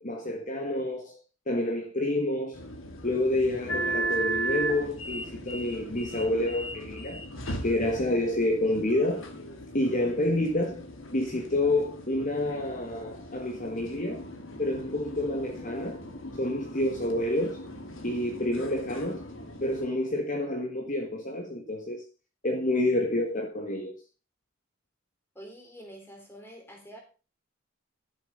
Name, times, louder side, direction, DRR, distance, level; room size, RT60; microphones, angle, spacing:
voice 1, 0.0-2.7 3.0-7.2 7.6-9.3 9.7-14.2 14.6-16.0 16.4-17.7 18.0-19.3 19.6-22.0 22.4-24.0, left 1 dB, 35° left, 1.5 m, -28 dB
sound 1, 2.5-19.9, right 1 dB, 60° left, 2.3 m, -37 dB
voice 2, 25.4-27.0, equal, 10° left, 3.5 m, -46 dB
12.5 x 7.5 x 5.4 m
head